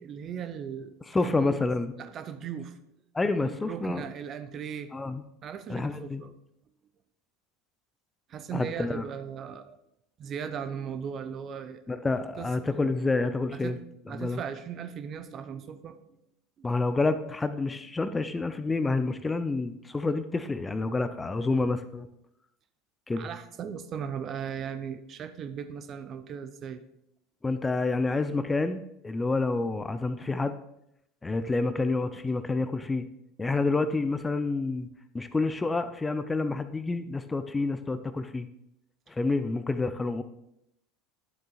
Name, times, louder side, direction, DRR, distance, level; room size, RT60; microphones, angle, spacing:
voice 1, 0.0-1.6 2.0-2.8 3.4-4.9 5.4-6.3 8.3-9.8 10.2-12.0 12.4-12.5 13.5-13.8 14.1-16.2 23.1-26.8, right 7 dB, 35° right, 10 dB, 0.6 m, -38 dB
voice 2, 1.1-1.9 3.1-4.0 4.9-5.2 5.7-6.2 8.5-9.0 11.9-13.8 14.2-14.4 16.6-22.1 23.1-23.3 27.4-30.5 31.2-33.1 33.4-34.9 35.1-38.5 39.1-40.2, left 3 dB, 15° left, 11 dB, 0.5 m, -28 dB
12.0 x 7.4 x 2.4 m, 0.80 s
figure-of-eight pair, 75°, 0 cm